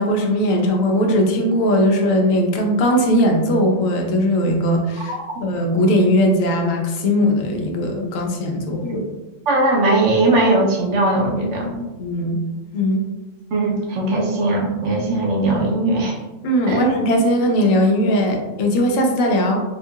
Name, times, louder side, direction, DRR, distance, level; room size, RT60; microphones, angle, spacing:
voice 1, 0.0-5.1 5.4-8.8 12.0-12.4 12.7-13.0 16.4-19.6, equal, 80° left, 1 dB, 1.0 m, -19 dB
voice 2, 9.5-11.8 13.5-16.2 16.7-16.8, right 2 dB, 65° right, -1 dB, 0.9 m, -19 dB
3.6 x 2.7 x 2.3 m, 1.1 s
omnidirectional pair, 1.4 m